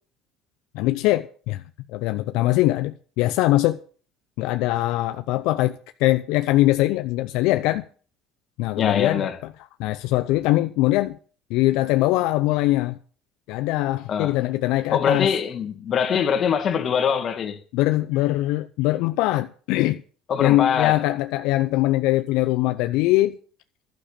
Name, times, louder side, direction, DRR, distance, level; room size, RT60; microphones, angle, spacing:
voice 1, 0.7-1.6 1.9-3.8 4.4-7.8 8.6-9.3 9.8-11.2 11.5-13.0 13.5-15.3 17.7-20.0 20.4-23.4, left 17 dB, 75° left, 0.6 m, -22 dB
voice 2, 8.8-9.4 14.1-14.4 14.9-17.6 20.3-21.0, left 7 dB, 40° left, 1.9 m, -23 dB
12.0 x 6.7 x 8.8 m
cardioid pair, 115°, 0 cm